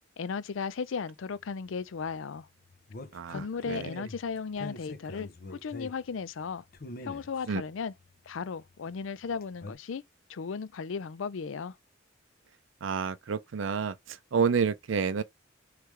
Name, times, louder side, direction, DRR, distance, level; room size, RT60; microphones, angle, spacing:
voice 1, 0.2-2.5 3.3-6.6 7.0-7.9 8.3-10.0 10.3-11.8, left 5 dB, 85° left, 0.5 m, -36 dB
sound 1, 1.3-9.7, left 2 dB, 50° left, 0.7 m, -45 dB
voice 2, 3.1-3.4 3.7-3.9 7.5-7.6 12.8-13.9 14.3-15.2, right 6 dB, 80° right, 0.5 m, -28 dB
4.7 x 3.3 x 3.3 m
head